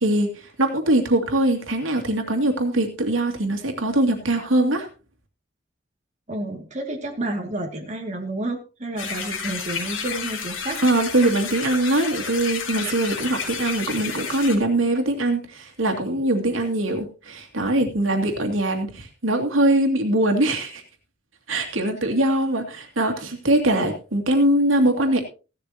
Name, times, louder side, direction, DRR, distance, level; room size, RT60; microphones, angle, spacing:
voice 1, 0.0-4.9 10.8-20.8 21.5-25.2, right 1 dB, 85° right, 3 dB, 2.6 m, -22 dB
voice 2, 6.3-10.8, right 1 dB, 35° right, 1 dB, 2.5 m, -30 dB
sound 1, 9.0-14.6, left 6 dB, 75° left, 3.0 m, -31 dB
16.5 x 12.5 x 2.9 m, 0.33 s
head